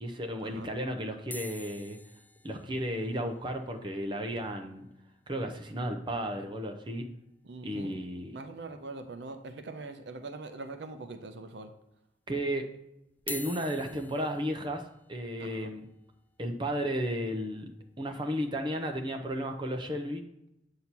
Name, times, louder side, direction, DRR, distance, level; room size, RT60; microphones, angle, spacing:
voice 1, 0.0-2.0 2.4-4.9 5.3-7.1 7.6-8.4 12.3-12.7 13.3-14.8 15.1-15.9 16.4-20.2, equal, 25° right, 4 dB, 0.7 m, -33 dB
sound 1, 1.3-5.6 5.9-6.0 6.2-6.4 6.8-6.9 8.3-8.4 9.0-9.6 10.1-10.2 11.0-11.1 13.1-19.2 19.8-20.0, left 3 dB, 10° left, 0.3 m, -48 dB
voice 2, 7.4-8.0 8.3-11.7 15.4-15.7, right 3 dB, 70° right, 8 dB, 0.6 m, -42 dB
8.2 x 2.8 x 5.9 m, 0.84 s
head